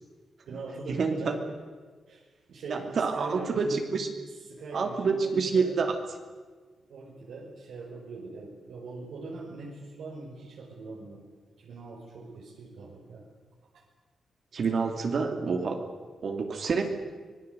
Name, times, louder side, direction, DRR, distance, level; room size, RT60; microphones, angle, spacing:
voice 1, 0.4-1.4 2.1-3.8 4.5-5.8 6.9-11.2 11.6-13.3 13.7-13.8, right 3 dB, 80° right, -3 dB, 5.1 m, -41 dB
voice 2, 1.0-1.4 2.7-4.1 4.7-5.9 14.5-15.8 16.2-16.9, right 5 dB, 50° right, 4 dB, 2.6 m, -27 dB
25.5 x 20.0 x 8.1 m, 1.4 s
wide cardioid pair, 135°, 0 cm